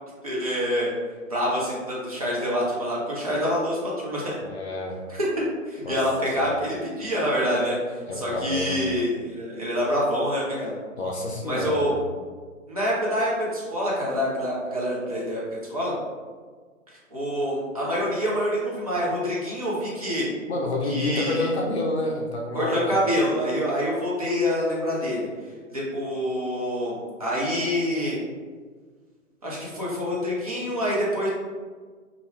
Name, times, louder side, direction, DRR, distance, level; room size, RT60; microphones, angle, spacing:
voice 1, 0.2-0.9 1.3-4.4 5.1-5.3 5.7-7.8 8.2-10.8 11.5-11.9 12.7-15.4 15.7-15.9 17.1-20.3 20.9-21.5 22.5-25.3 25.7-28.2 29.4-31.3, equal, 30° right, -6 dB, 0.4 m, -26 dB
voice 2, 4.4-5.0 5.8-6.6 8.1-8.8 11.0-11.9 20.5-23.1, left 2 dB, 55° left, -1 dB, 0.5 m, -29 dB
2.4 x 2.1 x 3.0 m, 1.5 s
figure-of-eight pair, 125°, 40 cm